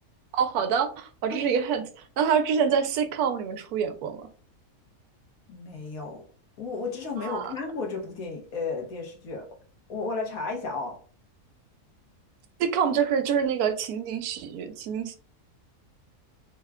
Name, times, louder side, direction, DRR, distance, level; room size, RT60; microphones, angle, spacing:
voice 1, 0.3-1.8 2.2-4.3 7.2-7.5 12.6-15.2, right 7 dB, 80° right, 1.1 m, -26 dB
voice 2, 5.5-6.3 6.6-9.6 9.9-11.0, left 4 dB, 70° left, 1.3 m, -33 dB
3.5 x 2.2 x 3.5 m
omnidirectional pair, 1.6 m